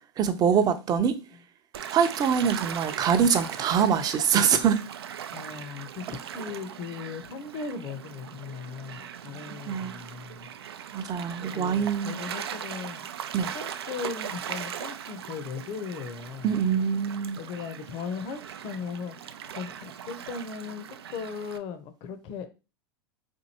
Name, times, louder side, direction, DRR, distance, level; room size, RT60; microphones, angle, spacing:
voice 1, 0.2-1.1 1.9-4.8 9.7-9.9 10.9-12.2 13.3-13.5 16.4-17.4, right 7 dB, 30° right, 0.6 m, -24 dB
Gull seagull / Waves surf, 1.7-21.6, right 9 dB, 80° right, 0.4 m, -39 dB
voice 2, 5.3-10.5 11.4-13.1 13.5-16.5 17.4-22.5, left 5 dB, 45° left, 0.7 m, -38 dB
4.4 x 2.6 x 2.8 m
hypercardioid pair, 95°, 13 cm